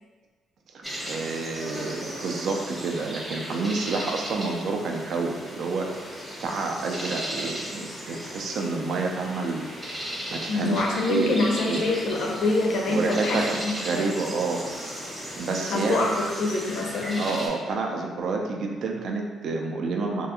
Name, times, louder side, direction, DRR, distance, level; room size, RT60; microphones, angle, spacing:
voice 1, 0.7-9.7 10.3-11.8 12.9-14.6 15.4-16.1 17.2-20.3, right 3 dB, 65° right, 1 dB, 0.4 m, -29 dB
sound 1, 0.8-17.5, equal, 10° right, 0.7 m, -36 dB
voice 2, 10.5-14.1 15.6-17.3, left 2 dB, 70° left, 0 dB, 0.4 m, -26 dB
2.4 x 2.2 x 2.8 m, 1.4 s
cardioid pair, 90°, 0 cm